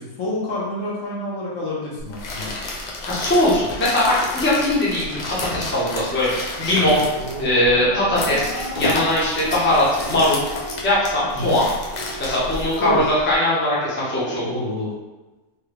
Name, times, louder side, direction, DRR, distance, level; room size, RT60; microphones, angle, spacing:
voice 1, 0.0-2.5 11.3-11.6 12.8-13.1 13.8-14.9, left 1 dB, 70° left, -5 dB, 1.2 m, -28 dB
sound 1, 2.0-13.3, left 2 dB, 85° left, 0.3 m, -31 dB
voice 2, 3.0-7.0 7.4-10.4 10.8-11.7 12.2-14.5, left 1 dB, 10° left, -8 dB, 0.7 m, -20 dB
sound 2, 6.7-13.2, right 1 dB, 50° right, 0.3 m, -35 dB
3.4 x 2.2 x 3.3 m, 1.1 s
omnidirectional pair, 1.5 m